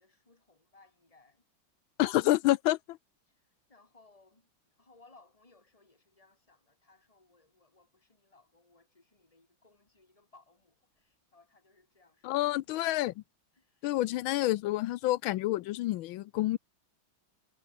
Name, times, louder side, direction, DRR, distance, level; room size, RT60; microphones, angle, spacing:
voice 1, 0.0-1.4 3.3-3.4 3.7-12.4 13.5-13.9, left 3 dB, 15° left, 3.7 m, -63 dB
voice 2, 2.0-3.0 12.2-13.1 13.8-16.6, left 16 dB, 85° left, 1.4 m, -28 dB
omnidirectional pair, 2.2 m